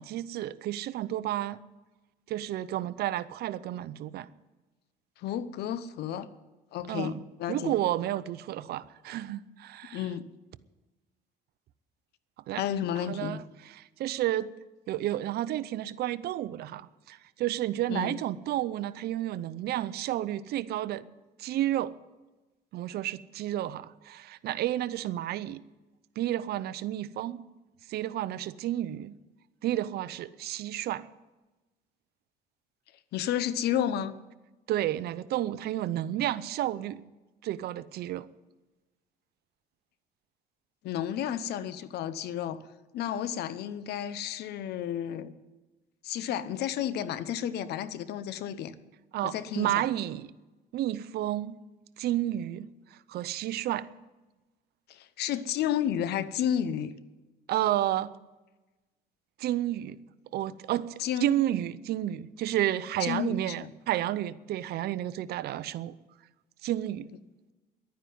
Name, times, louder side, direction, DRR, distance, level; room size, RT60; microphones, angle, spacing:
voice 1, 0.0-1.6 2.3-4.3 6.9-7.2 7.5-10.0 12.5-12.6 13.1-13.4 13.8-14.5 14.9-21.0 21.4-21.9 22.7-25.6 26.2-27.4 27.9-29.2 29.6-31.0 34.7-37.1 37.4-38.3 49.1-50.3 50.7-51.6 52.0-52.7 53.1-53.9 57.5-58.1 59.4-60.0 60.3-60.9 61.2-65.9 66.6-67.1, right 13 dB, 70° right, 0.7 m, -31 dB
voice 2, 5.2-6.3 6.7-7.7 9.9-10.3 12.5-13.4 17.9-18.2 33.1-34.1 40.8-42.6 42.9-45.3 46.0-48.7 49.2-49.8 54.9-57.0 61.0-61.3 63.0-63.7, left 10 dB, 75° left, 0.9 m, -32 dB
11.5 x 9.6 x 9.4 m
cardioid pair, 110°, 17 cm